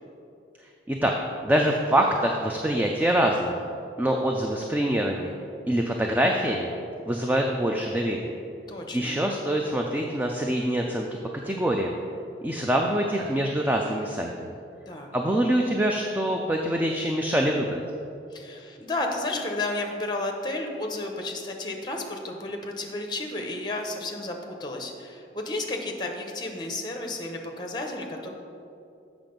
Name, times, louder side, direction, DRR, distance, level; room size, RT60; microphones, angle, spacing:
voice 1, 1.4-3.6 4.0-5.3 5.7-6.7 7.0-8.3 8.9-11.1 11.4-12.0 12.4-14.6 15.1-17.8, right 1 dB, 10° right, 1 dB, 0.4 m, -25 dB
voice 2, 8.7-9.2 14.9-15.1 18.3-28.3, left 2 dB, 25° left, 2 dB, 0.8 m, -32 dB
7.5 x 6.0 x 5.2 m, 2.6 s
head